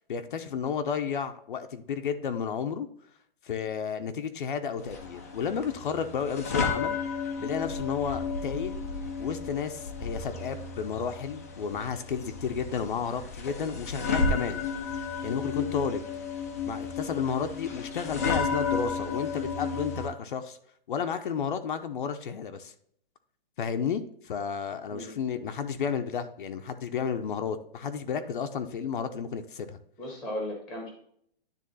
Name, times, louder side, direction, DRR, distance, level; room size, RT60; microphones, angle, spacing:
voice 1, 0.1-2.9 3.4-7.0 7.4-8.8 9.2-14.6 15.2-16.0 16.6-20.6 20.9-22.7 23.6-29.8, left 7 dB, 60° left, 7 dB, 0.7 m, -32 dB
sound 1, 4.8-20.1, left 4 dB, 15° left, 0.4 m, -33 dB
voice 2, 30.0-30.9, left 1 dB, ahead, 0 dB, 0.9 m, -36 dB
10.0 x 3.5 x 4.0 m, 0.67 s
hypercardioid pair, 175°, 29 cm